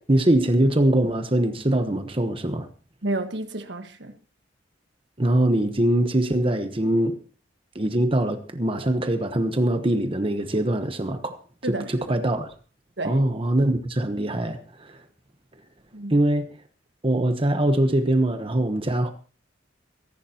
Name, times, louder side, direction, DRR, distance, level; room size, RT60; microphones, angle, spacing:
voice 1, 0.1-2.7 5.2-7.2 7.7-11.4 11.7-12.5 13.0-15.0 16.1-16.5 17.0-19.1, right 1 dB, 30° right, 1.0 m, -22 dB
voice 2, 3.0-4.1 11.6-12.2 13.0-13.2 15.9-16.2, right 2 dB, 65° right, 1.6 m, -31 dB
23.5 x 11.0 x 2.9 m
head